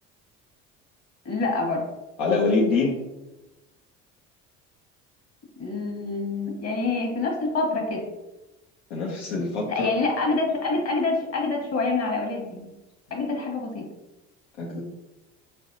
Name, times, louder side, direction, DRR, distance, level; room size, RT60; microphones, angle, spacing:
voice 1, 1.2-1.8 5.6-8.1 9.7-12.7 13.1-13.8, left 3 dB, 50° left, 0 dB, 1.4 m, -26 dB
voice 2, 2.2-3.0 8.9-9.9 14.6-14.8, left 3 dB, 90° left, -4 dB, 0.7 m, -24 dB
4.1 x 3.4 x 2.6 m, 1.0 s
supercardioid pair, 75°, 33 cm